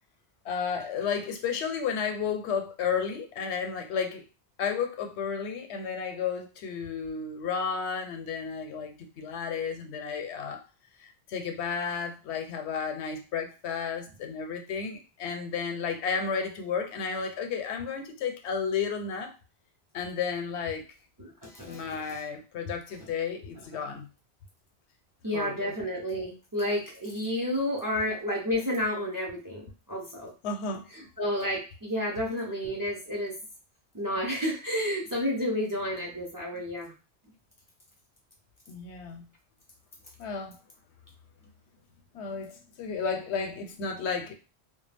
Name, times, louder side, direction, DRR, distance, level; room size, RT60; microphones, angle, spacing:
voice 1, 0.4-4.2 4.6-10.6 11.0-19.3 19.9-20.8 21.7-24.1 25.3-25.7 30.4-30.9 38.7-39.3 40.2-40.6 42.1-44.3, left 6 dB, 85° left, 0.9 m, -32 dB
voice 2, 21.2-22.2 25.2-30.3 30.9-33.3 33.9-36.9, left 1 dB, 30° right, 0.4 m, -31 dB
2.2 x 2.1 x 3.3 m
omnidirectional pair, 1.1 m